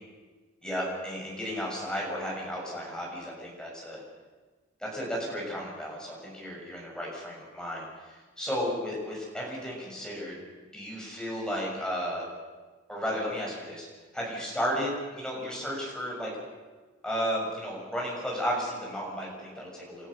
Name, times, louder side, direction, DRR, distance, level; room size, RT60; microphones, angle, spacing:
voice 1, 0.6-4.0 4.8-10.3 10.7-12.3 12.9-13.9 14.1-16.3 17.0-20.1, equal, 5° left, -3 dB, 6.6 m, -33 dB
29.5 x 13.5 x 6.5 m, 1.4 s
head